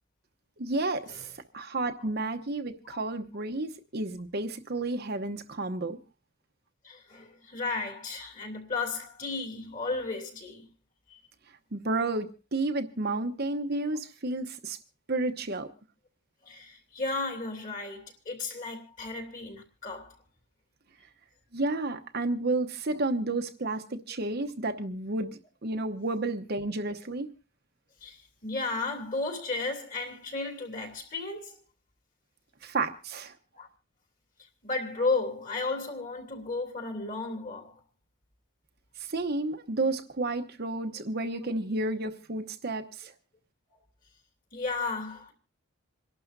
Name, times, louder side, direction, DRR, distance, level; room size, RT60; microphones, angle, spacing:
voice 1, 0.6-1.3 1.5-6.0 11.7-14.8 15.1-15.7 21.5-27.3 32.6-33.3 39.0-43.1, right 2 dB, 45° right, 1.0 m, -31 dB
voice 2, 6.8-10.7 11.1-11.2 16.4-20.2 28.0-31.6 33.5-33.7 34.6-37.8 44.5-45.3, left 3 dB, 35° left, 3.0 m, -34 dB
28.0 x 12.0 x 2.6 m
head